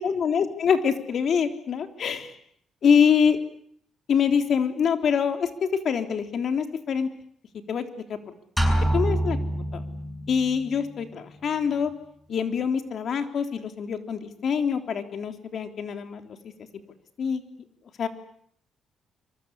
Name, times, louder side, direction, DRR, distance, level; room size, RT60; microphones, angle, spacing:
voice 1, 0.0-2.3 2.8-3.4 4.1-5.5 5.8-7.1 7.7-7.8 8.1-8.2 8.9-9.8 10.3-11.9 12.3-16.4 17.2-17.4 18.0-18.1, left 7 dB, 60° left, 7 dB, 3.5 m, -25 dB
sound 1, 8.6-10.4, right 1 dB, 5° left, 7.7 m, -25 dB
26.0 x 24.5 x 8.4 m, 0.66 s
cardioid pair, 90°, 0 cm